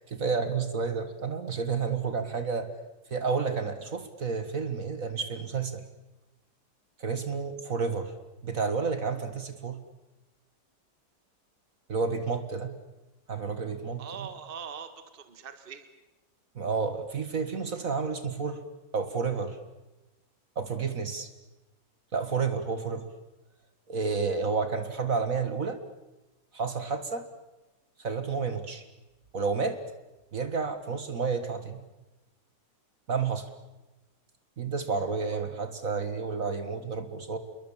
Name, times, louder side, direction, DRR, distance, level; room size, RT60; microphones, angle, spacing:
voice 1, 0.0-2.7 3.1-5.8 7.0-8.1 8.4-9.8 11.9-12.7 13.3-14.3 16.6-18.6 18.9-19.6 20.6-21.3 22.1-23.0 23.9-25.8 26.5-27.2 28.0-28.8 29.3-29.8 30.3-31.8 33.1-33.5 34.6-37.4, right 5 dB, 50° right, 10 dB, 2.0 m, -30 dB
voice 2, 14.0-15.9 35.2-35.4, right 7 dB, 30° right, 10 dB, 1.7 m, -42 dB
28.0 x 22.5 x 7.3 m, 1.0 s
omnidirectional pair, 2.0 m